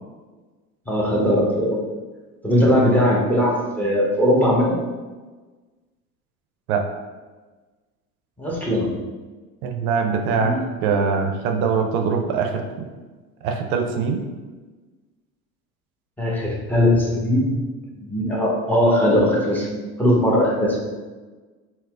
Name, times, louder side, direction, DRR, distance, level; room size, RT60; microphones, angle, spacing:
voice 1, 0.9-1.8 2.4-4.8 8.4-8.9 10.4-10.6 16.2-17.6 18.0-20.8, equal, 5° left, -3 dB, 0.7 m, -19 dB
voice 2, 2.7-3.0 6.7-6.8 9.6-10.5 10.8-12.9 13.4-14.2, right 5 dB, 70° right, 4 dB, 0.5 m, -22 dB
4.1 x 2.1 x 2.4 m, 1.3 s
hypercardioid pair, 80°, 44 cm